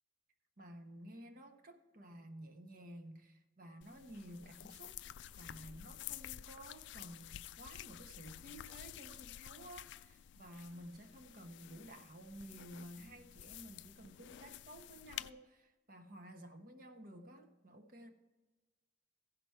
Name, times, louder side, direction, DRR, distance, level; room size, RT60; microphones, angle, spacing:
voice 1, 0.6-5.0 5.4-18.1, right 1 dB, 50° right, 1.1 m, -53 dB
sound 1, 3.8-15.3, left 12 dB, 70° left, 0.3 m, -51 dB
15.0 x 6.0 x 4.5 m
head